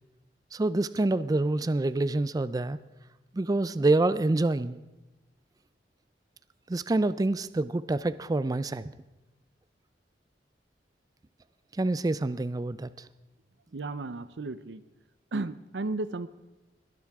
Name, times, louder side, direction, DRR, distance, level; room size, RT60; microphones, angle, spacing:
voice 1, 0.5-2.8 3.3-4.8 6.7-8.9 11.8-12.9, right 2 dB, 20° right, 15 dB, 0.4 m, -26 dB
voice 2, 13.7-14.8 15.3-16.3, right 3 dB, 80° right, 14 dB, 0.6 m, -34 dB
21.5 x 12.0 x 3.6 m, 1.0 s
head